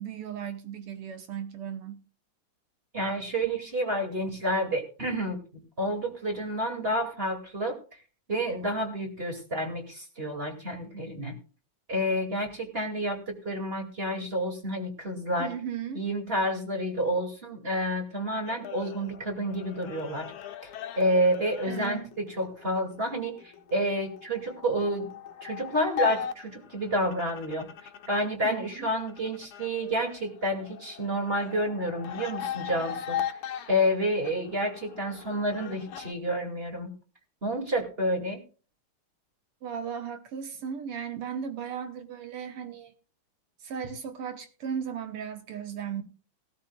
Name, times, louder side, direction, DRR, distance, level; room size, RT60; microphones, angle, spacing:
voice 1, 0.0-2.0 15.4-16.0 21.7-22.1 28.4-28.9 33.5-33.7 39.6-42.9 43.6-46.0, right 8 dB, 60° right, 1.6 m, -36 dB
voice 2, 2.9-5.4 5.8-8.0 8.3-11.4 11.9-15.5 15.9-20.3 20.6-25.1 25.4-33.2 33.7-36.9 37.4-38.4, equal, 20° right, 2.2 m, -29 dB
sound 1, 18.5-28.3 28.6-36.1, left 9 dB, 75° left, 2.4 m, -39 dB
19.5 x 13.0 x 2.3 m
omnidirectional pair, 3.5 m